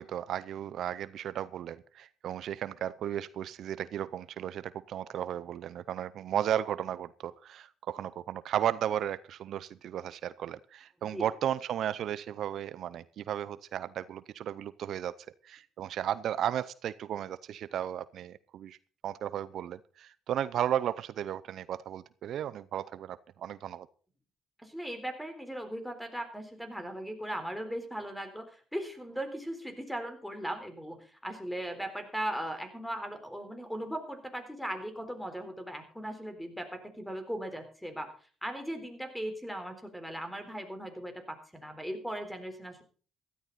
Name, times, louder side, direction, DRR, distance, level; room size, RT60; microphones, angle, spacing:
voice 1, 0.0-15.1 15.4-18.8 19.0-23.9, right 10 dB, 65° right, 17 dB, 0.6 m, -34 dB
voice 2, 24.6-28.4 28.7-31.0 31.2-38.1 38.4-42.8, right 1 dB, 5° left, 8 dB, 3.9 m, -38 dB
16.0 x 13.0 x 4.1 m, 0.40 s
cardioid pair, 80°, 0 cm